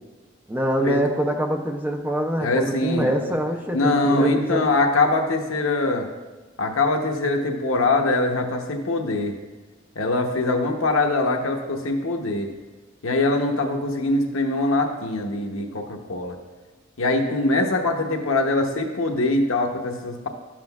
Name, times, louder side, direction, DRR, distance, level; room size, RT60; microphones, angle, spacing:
voice 1, 0.5-4.7, right 1 dB, 10° right, 3 dB, 0.4 m, -25 dB
voice 2, 2.4-3.1 3.7-6.1 6.6-9.3 10.0-12.5 13.0-16.3 17.0-20.3, left 2 dB, 80° left, 3 dB, 0.8 m, -23 dB
11.5 x 7.4 x 2.3 m, 1.2 s
head